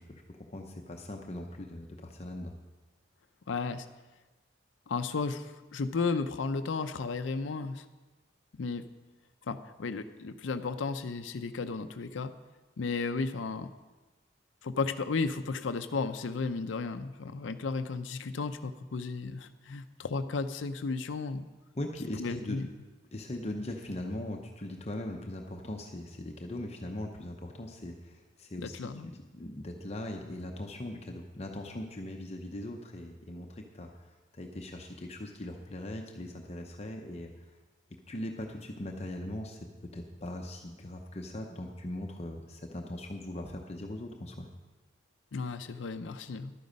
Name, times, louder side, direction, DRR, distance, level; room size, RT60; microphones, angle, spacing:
voice 1, 0.0-2.5 21.7-22.6 23.1-28.8 29.0-37.5 38.1-44.5, left 1 dB, 35° left, 2 dB, 0.7 m, -40 dB
voice 2, 3.5-3.9 4.9-7.9 8.5-8.8 9.5-12.3 12.8-13.7 14.6-21.5 22.2-22.7 28.6-29.1 45.3-46.5, left 4 dB, 80° left, 9 dB, 0.5 m, -34 dB
11.5 x 9.3 x 5.1 m, 1.2 s
head